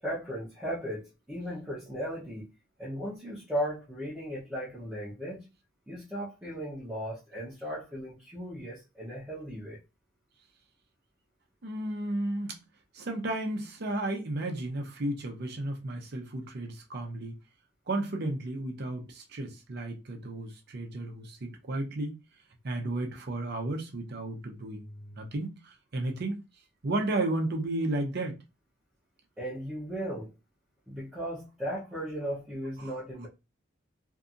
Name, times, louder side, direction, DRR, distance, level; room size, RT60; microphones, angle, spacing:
voice 1, 0.0-2.5 2.8-5.4 5.9-9.8 29.4-30.3 30.9-33.3, equal, 5° right, 0.7 m, -36 dB
voice 2, 11.6-12.6 12.9-17.3 17.9-22.2 22.6-26.4 26.8-28.3 32.8-33.0, right 2 dB, 55° right, 0.6 m, -33 dB
2.7 x 2.5 x 2.4 m
head